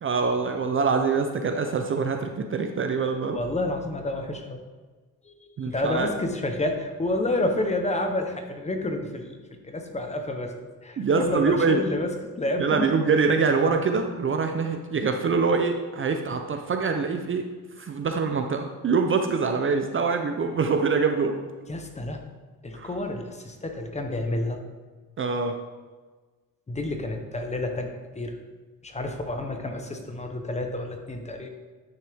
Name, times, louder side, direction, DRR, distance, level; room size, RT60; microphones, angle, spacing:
voice 1, 0.0-3.4 5.6-6.1 11.0-11.8 12.6-17.5 17.8-21.4 22.7-22.9 25.2-25.6, right 5 dB, 35° right, 5 dB, 0.5 m, -24 dB
voice 2, 3.3-4.6 5.3-5.4 5.6-9.4 9.6-10.5 10.8-12.1 12.4-12.9 21.7-22.2 22.6-24.6 26.7-28.4 28.8-31.6, left 2 dB, 15° left, 4 dB, 0.8 m, -29 dB
10.0 x 6.4 x 3.5 m, 1.4 s
cardioid pair, 135°, 38 cm